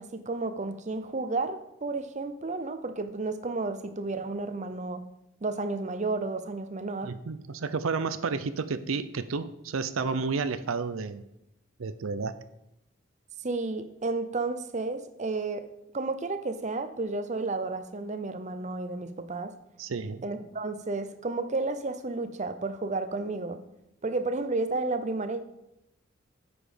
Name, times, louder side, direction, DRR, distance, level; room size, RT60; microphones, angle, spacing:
voice 1, 0.0-5.0 5.4-7.1 13.4-15.7 15.9-19.5 20.2-23.6 24.0-25.4, right 3 dB, 35° right, 9 dB, 0.7 m, -32 dB
voice 2, 7.0-11.2 11.8-12.4 19.8-20.2, right 4 dB, 85° right, 12 dB, 0.6 m, -31 dB
9.0 x 6.9 x 5.1 m, 0.84 s
head